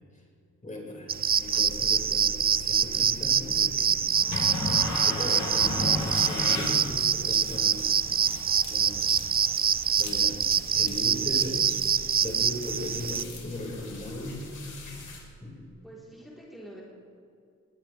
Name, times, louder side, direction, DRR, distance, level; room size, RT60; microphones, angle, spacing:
voice 1, 0.6-4.0 5.0-7.8 8.7-9.2 10.0-10.4 10.7-11.7 12.2-14.4 15.4-15.5, left 1 dB, 25° left, -2 dB, 5.4 m, -37 dB
sound 1, 1.1-13.2, right 7 dB, 30° right, 0.4 m, -25 dB
sound 2, 1.3-15.2, left 2 dB, 90° left, 3.8 m, -38 dB
sound 3, 6.0-13.5, left 4 dB, 70° left, 3.5 m, -47 dB
voice 2, 15.8-16.8, right 1 dB, ahead, -7 dB, 4.0 m, -46 dB
21.0 x 19.5 x 3.5 m, 2.5 s
wide cardioid pair, 100°, 30 cm